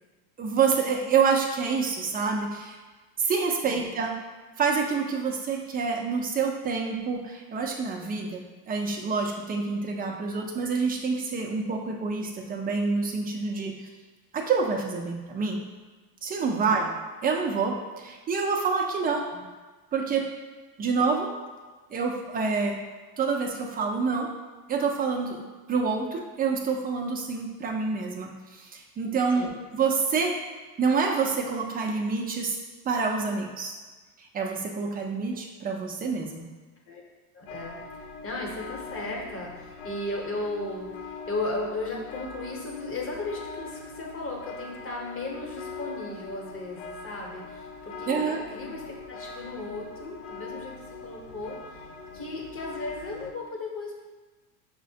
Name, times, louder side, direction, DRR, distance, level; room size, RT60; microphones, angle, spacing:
voice 1, 0.4-2.8 3.2-4.2 4.6-13.9 14.3-15.6 16.2-16.8 17.2-19.3 19.9-20.3 20.8-21.3 21.9-22.8 23.2-24.3 24.7-25.4 25.7-30.4 30.8-32.5 32.9-33.7 34.3-36.5 48.1-48.4, right 5 dB, 20° right, 1 dB, 0.5 m, -27 dB
voice 2, 16.6-17.0 19.3-19.4 29.3-29.6 36.9-37.0 37.3-51.9 52.1-54.1, left 2 dB, 25° left, -2 dB, 1.0 m, -36 dB
sound 1, 37.5-53.3, left 4 dB, 70° left, 0.6 m, -42 dB
6.1 x 2.1 x 2.7 m, 1.3 s
supercardioid pair, 100°, 48 cm